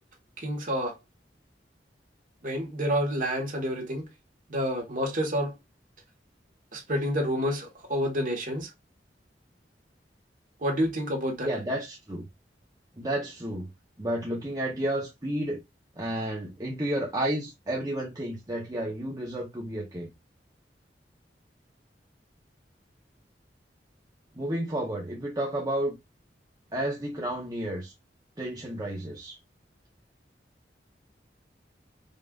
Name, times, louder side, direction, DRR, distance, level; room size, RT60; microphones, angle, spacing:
voice 1, 0.4-1.0 2.4-4.0 4.5-5.5 6.7-8.7 10.6-11.5, equal, 50° right, 1.3 m, -28 dB
voice 2, 11.4-12.3 13.0-13.7 14.0-15.6 16.0-20.1 24.3-26.0 26.7-27.9 28.4-29.4, right 1 dB, 20° right, 0.8 m, -31 dB
5.2 x 2.5 x 2.4 m
head